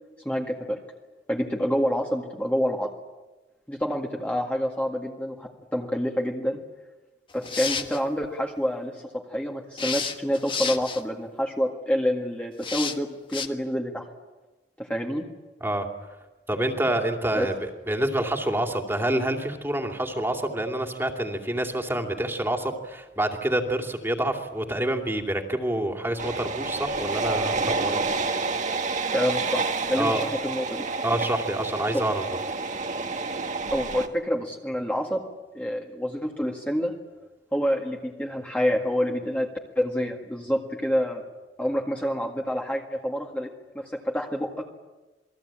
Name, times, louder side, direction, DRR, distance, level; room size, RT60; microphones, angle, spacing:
voice 1, 0.3-0.8 1.3-2.9 3.7-6.6 7.3-14.1 14.8-15.3 17.3-17.5 29.1-29.6 29.9-30.8 31.9-32.1 33.7-35.2 35.5-36.9 37.5-39.5 39.8-41.2 41.6-44.6, equal, 10° left, 0 dB, 1.9 m, -27 dB
sound 1, 7.3-8.0 9.8-11.0 12.6-13.0 13.3-13.5, left 6 dB, 30° left, 1.5 m, -30 dB
voice 2, 16.5-28.0 30.0-30.2 31.0-32.2, right 1 dB, 15° right, 4 dB, 2.7 m, -27 dB
sound 2, 26.2-34.1, right 3 dB, 45° right, 1.8 m, -29 dB
28.0 x 21.0 x 8.9 m, 1.1 s
head